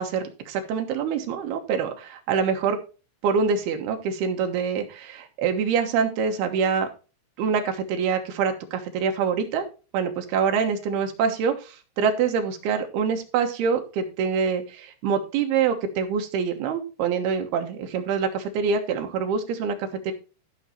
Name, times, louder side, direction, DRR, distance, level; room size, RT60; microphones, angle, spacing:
voice 1, 0.0-2.8 3.2-6.9 7.4-9.7 9.9-20.1, right 6 dB, 85° right, 5 dB, 3.2 m, -25 dB
13.0 x 6.2 x 4.3 m, 0.33 s
omnidirectional pair, 4.4 m